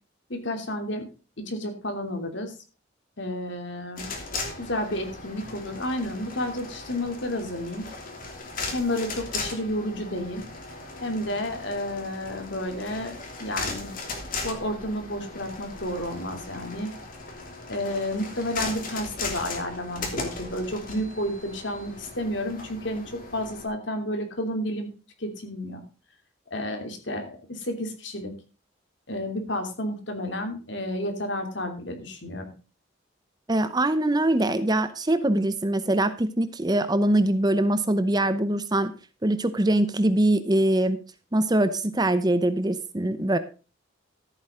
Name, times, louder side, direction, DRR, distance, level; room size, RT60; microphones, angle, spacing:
voice 1, 0.3-1.1 1.4-2.5 3.2-4.1 4.6-7.8 8.7-10.4 11.0-13.9 14.4-16.9 17.7-24.9 25.2-25.8 26.5-28.3 29.1-32.5, left 1 dB, 60° left, 5 dB, 3.0 m, -31 dB
sound 1, 4.0-23.7, left 3 dB, 45° left, 3.0 m, -37 dB
voice 2, 33.5-38.9 39.2-41.0 41.3-43.4, right 1 dB, 20° right, 12 dB, 0.8 m, -23 dB
14.0 x 8.8 x 3.8 m, 0.34 s
head